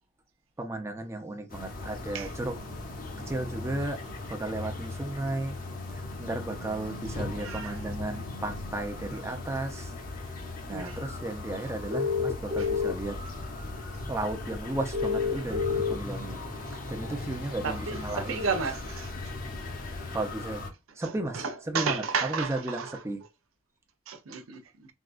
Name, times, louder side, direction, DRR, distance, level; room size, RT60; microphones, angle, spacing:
voice 1, 0.6-2.5 3.3-4.0 4.3-5.6 5.9-9.9 10.7-13.2 14.1-16.4 16.9-18.4 20.1-20.7 21.0-23.2, right 2 dB, 15° right, 0.5 m, -34 dB
sound 1, 1.5-20.7, left 2 dB, 45° left, 0.8 m, -38 dB
voice 2, 7.4-7.8 10.7-11.0 12.6-12.7 17.6-19.3 20.9-23.0 24.1-24.9, right 5 dB, 85° right, 0.6 m, -33 dB
sound 2, 11.9-12.9 14.9-15.9, left 5 dB, 50° right, 0.9 m, -27 dB
3.6 x 2.3 x 2.3 m
head